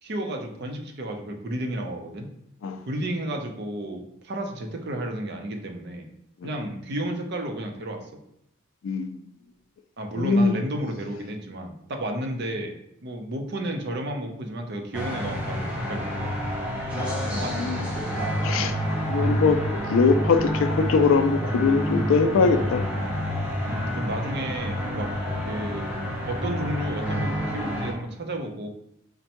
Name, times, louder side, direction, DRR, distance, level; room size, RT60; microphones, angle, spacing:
voice 1, 0.0-2.3 2.9-6.1 6.4-8.0 10.0-12.7 13.0-16.4 17.3-17.8 18.6-18.7 23.7-25.1 25.5-25.9 26.3-28.7, right 1 dB, 50° right, 4 dB, 0.6 m, -32 dB
voice 2, 8.8-9.2 10.2-10.6 17.4-18.1 18.4-18.8 19.0-22.8, left 4 dB, 65° left, 9 dB, 0.3 m, -22 dB
sound 1, 14.9-27.9, equal, 5° right, 0.6 m, -28 dB
5.2 x 2.2 x 2.8 m, 0.78 s
head